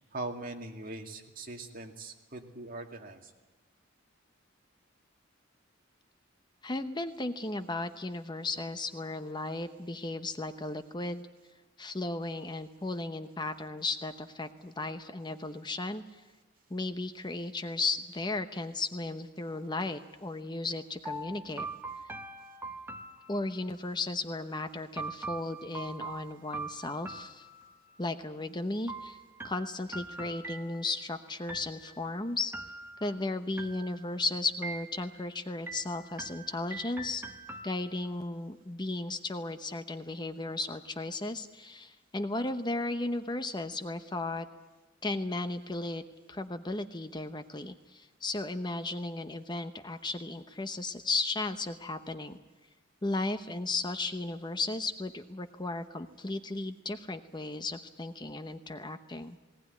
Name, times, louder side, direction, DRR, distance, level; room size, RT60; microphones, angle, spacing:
voice 1, 0.0-3.2, right 2 dB, 45° right, 3 dB, 2.3 m, -41 dB
voice 2, 6.6-11.3 11.8-16.0 16.7-21.7 23.3-27.5 28.0-29.2 29.4-32.5 33.0-37.2 37.6-44.5 45.0-46.0 46.3-52.4 53.0-59.4, left 2 dB, 25° left, 9 dB, 0.9 m, -35 dB
sound 1, 21.0-23.8 25.0-28.0 28.9-31.1 31.5-32.1 32.5-33.2 33.6-34.2 34.6-35.3 35.7-38.1, right 2 dB, 10° right, 1.2 m, -43 dB
19.5 x 19.0 x 9.6 m, 1.2 s
head